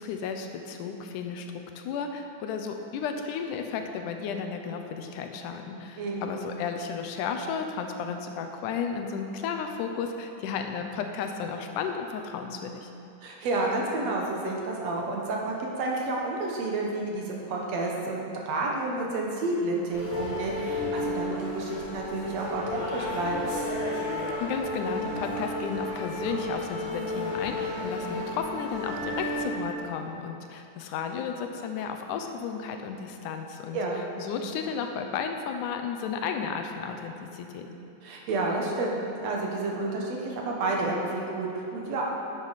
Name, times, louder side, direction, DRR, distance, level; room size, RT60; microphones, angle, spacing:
voice 1, 0.0-12.9 24.4-33.8 34.2-37.7, left 6 dB, 90° left, 5 dB, 2.3 m, -33 dB
voice 2, 6.0-6.4 13.2-23.5 33.7-34.0 38.0-42.0, right 2 dB, 65° right, -1 dB, 2.1 m, -30 dB
sound 1, 19.9-29.5, left 1 dB, 25° left, 2.1 m, -32 dB
11.0 x 8.0 x 4.1 m, 2.7 s
omnidirectional pair, 3.5 m